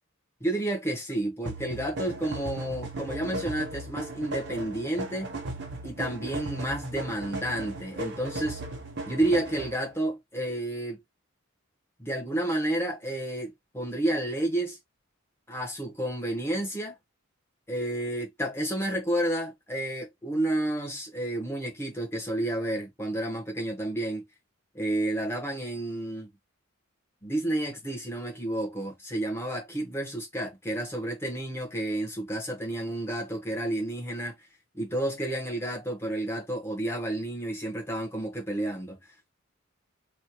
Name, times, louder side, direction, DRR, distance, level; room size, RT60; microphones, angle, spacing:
voice 1, 0.4-5.3 5.8-8.6 9.1-11.0 12.0-14.8 15.5-17.0 17.7-24.2 24.7-26.3 27.2-34.3 34.7-39.0, right 1 dB, 10° left, 1.2 m, -30 dB
sound 1, 1.5-9.9, right 2 dB, 60° right, 1.0 m, -37 dB
3.3 x 2.5 x 2.9 m
head